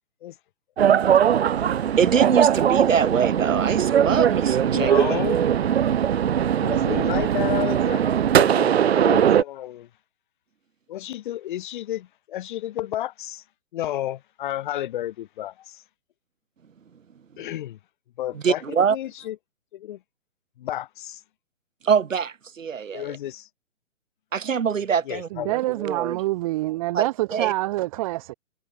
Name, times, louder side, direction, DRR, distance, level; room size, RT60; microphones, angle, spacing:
sound 1, 0.8-9.4, right 9 dB, 50° right, 2.5 m, -20 dB
voice 1, 1.7-4.9 18.3-19.0 21.8-23.2 24.3-26.2 26.9-27.5, right 7 dB, 65° right, 6.0 m, -24 dB
voice 2, 4.7-5.4 6.6-9.9 10.9-13.4 13.7-15.8 17.4-17.8 18.2-19.4 19.7-20.0 20.6-21.2 22.9-23.5 25.1-25.6, left 13 dB, 35° left, 6.9 m, -31 dB
voice 3, 25.3-28.3, right 18 dB, 25° right, 2.2 m, -26 dB
hypercardioid pair, 160°, 41 cm